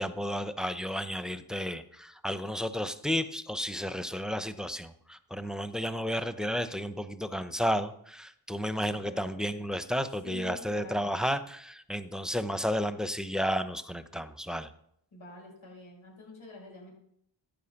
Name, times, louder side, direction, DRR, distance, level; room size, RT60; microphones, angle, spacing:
voice 1, 0.0-14.7, equal, ahead, 11 dB, 0.9 m, -32 dB
voice 2, 9.0-9.6 10.2-11.2 15.1-16.9, left 1 dB, 90° left, 0 dB, 5.6 m, -46 dB
13.0 x 9.4 x 6.0 m, 0.72 s
cardioid pair, 55°, 46 cm